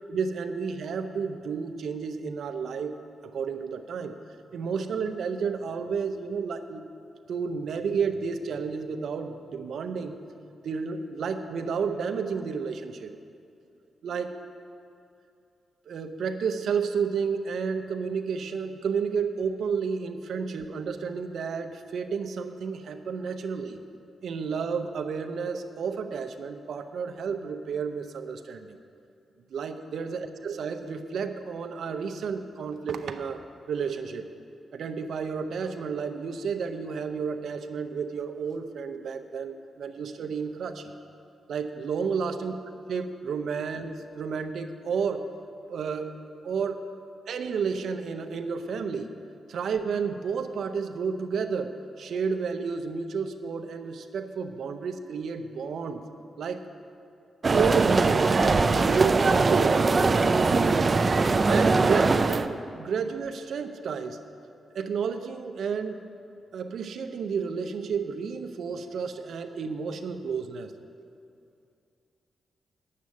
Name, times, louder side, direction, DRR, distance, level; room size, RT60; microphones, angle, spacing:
voice 1, 0.1-4.2 4.5-6.8 7.3-10.2 10.6-13.2 14.0-14.3 15.9-23.8 24.2-28.8 29.5-34.3 34.7-40.9 41.5-42.6 42.9-45.3 45.7-46.1 46.4-46.8 47.3-49.1 49.5-56.0 56.4-56.6 57.5-59.8 61.1-61.2 61.5-64.2 64.7-66.0 66.5-70.7, right 5 dB, 75° right, 7 dB, 0.7 m, -31 dB
sound 1, 57.4-62.5, right 3 dB, 40° right, 0.5 m, -21 dB
9.6 x 7.5 x 8.4 m, 2.5 s
cardioid pair, 85°, 0 cm